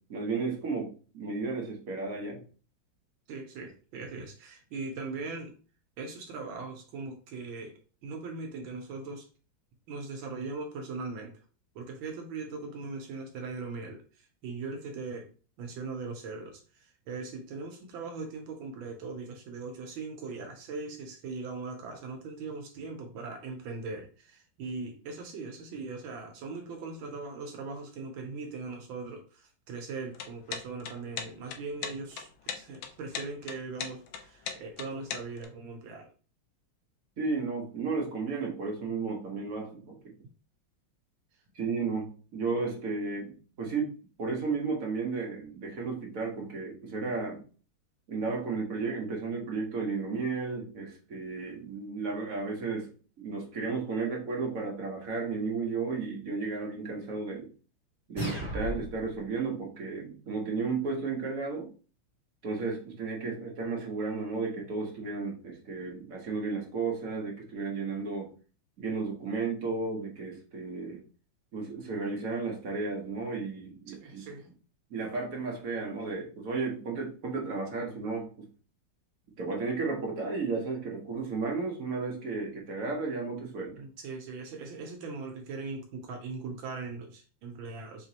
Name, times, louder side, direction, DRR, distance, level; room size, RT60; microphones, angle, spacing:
voice 1, 0.1-2.4 37.2-40.1 41.5-43.9 44.2-47.4 48.1-52.9 53.2-57.5 58.1-61.7 62.4-68.3 68.8-71.0 71.5-74.2 74.9-78.3 79.4-83.7, right 4 dB, 50° right, -1 dB, 1.3 m, -33 dB
voice 2, 3.3-5.5 6.0-9.3 9.9-11.3 11.7-15.3 15.6-32.3 32.5-36.1 73.9-74.5 83.8-88.1, right 4 dB, 80° right, 3 dB, 1.5 m, -40 dB
sound 1, 30.1-35.5, left 7 dB, 85° left, 1.4 m, -38 dB
sound 2, 58.2-59.2, equal, 10° right, 1.8 m, -35 dB
4.8 x 2.9 x 2.8 m, 0.38 s
omnidirectional pair, 2.2 m